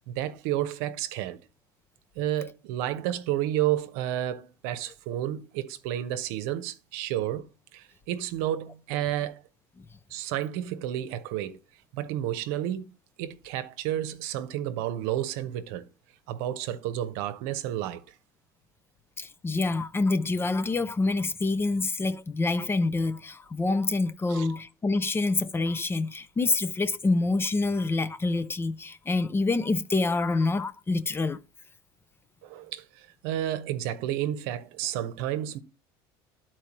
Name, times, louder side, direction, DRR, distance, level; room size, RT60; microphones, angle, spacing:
voice 1, 0.1-1.4 2.2-9.4 10.1-11.6 11.9-12.9 13.2-15.9 16.3-18.0 24.3-24.5 32.4-35.6, right 12 dB, 75° right, 0.8 m, -31 dB
voice 2, 19.2-31.4, left 3 dB, 20° left, 0.5 m, -27 dB
12.0 x 4.5 x 3.0 m
supercardioid pair, 90°, 12 cm